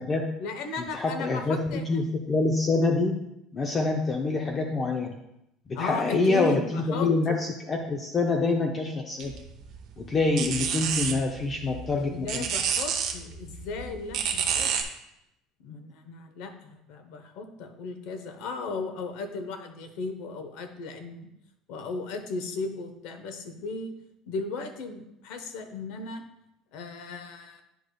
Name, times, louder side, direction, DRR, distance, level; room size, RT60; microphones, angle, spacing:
voice 1, 0.4-1.8 5.7-7.1 12.1-14.7 15.6-21.3 21.7-24.0 24.3-26.2 26.7-27.6, left 3 dB, 70° left, 7 dB, 0.9 m, -36 dB
voice 2, 0.9-3.2 3.5-5.1 5.7-9.3 10.0-12.5, left 3 dB, 25° left, 2 dB, 0.5 m, -26 dB
sound 1, 9.2-14.8, right 7 dB, 50° right, 0.8 m, -30 dB
10.5 x 4.9 x 2.3 m, 0.83 s
cardioid pair, 155°, 0 cm